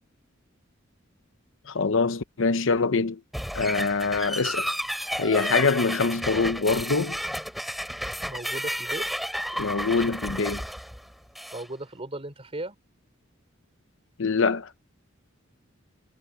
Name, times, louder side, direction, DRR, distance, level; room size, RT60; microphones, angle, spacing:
voice 1, 1.7-3.2 3.5-4.7 5.2-7.2 9.6-10.6 14.2-14.7, left 4 dB, 65° left, 0.8 m, -24 dB
sound 1, 3.3-11.7, equal, ahead, 3.1 m, -32 dB
voice 2, 8.2-9.1 11.5-12.8, right 2 dB, 30° right, 3.7 m, -36 dB
head